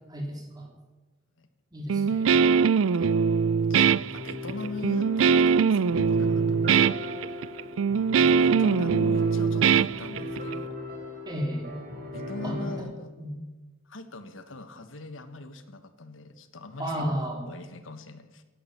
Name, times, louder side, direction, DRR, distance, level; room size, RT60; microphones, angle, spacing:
voice 1, 0.1-0.7 1.7-2.4 11.3-11.7 12.4-12.9 13.2-13.4 16.8-17.4, equal, 20° right, 1 dB, 3.3 m, -33 dB
Guitar, 1.9-10.5, right 6 dB, 80° right, 0.4 m, -22 dB
voice 2, 3.7-7.0 8.3-10.8 12.1-13.1 13.8-17.1 17.5-18.4, left 2 dB, 80° left, 10 dB, 1.4 m, -41 dB
sound 1, 3.9-12.8, left 1 dB, 50° right, 4.0 m, -38 dB
17.5 x 11.0 x 7.4 m, 1.2 s
head